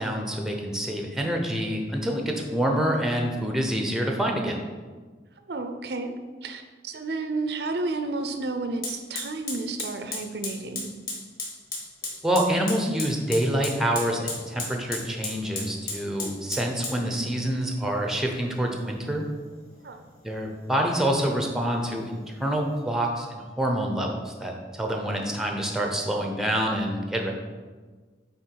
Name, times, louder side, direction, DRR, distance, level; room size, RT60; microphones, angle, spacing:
voice 1, 0.0-4.6 12.2-19.2 20.2-27.3, right 1 dB, ahead, 1 dB, 0.7 m, -27 dB
voice 2, 5.5-10.9 19.8-20.0, right 3 dB, 65° right, 7 dB, 0.6 m, -31 dB
Fire, 7.8-7.9 8.8-22.8, left 3 dB, 50° left, 1.9 m, -38 dB
8.7 x 3.6 x 4.6 m, 1.4 s
head